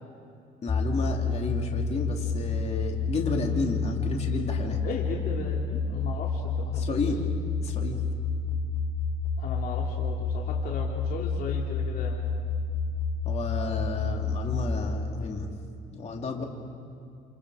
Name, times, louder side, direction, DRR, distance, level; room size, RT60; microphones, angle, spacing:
voice 1, 0.6-4.8 6.7-7.2 7.6-8.0 13.2-15.5 15.9-16.4, left 3 dB, 40° left, 1 dB, 3.0 m, -32 dB
sound 1, 0.7-14.7, left 4 dB, 20° left, 1.5 m, -29 dB
voice 2, 4.8-7.0 9.4-12.2 16.4-16.5, left 5 dB, 60° left, -2 dB, 2.8 m, -36 dB
28.5 x 28.5 x 5.0 m, 2.4 s
cardioid pair, 110°, 17 cm